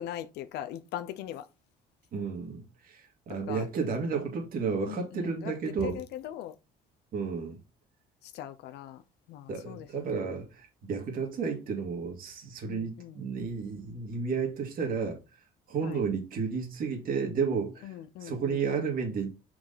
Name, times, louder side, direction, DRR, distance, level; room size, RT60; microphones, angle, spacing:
voice 1, 0.0-1.4 3.5-3.7 4.9-5.5 5.8-6.5 8.2-9.0 9.3-9.9 12.7-13.2 15.8-16.0 17.8-18.6, left 11 dB, 80° left, 0.7 m, -40 dB
voice 2, 2.1-6.0 7.1-7.6 9.5-15.2 15.7-17.9 18.2-19.3, right 5 dB, 55° right, 2.1 m, -32 dB
6.0 x 4.8 x 4.0 m
cardioid pair, 110°, 17 cm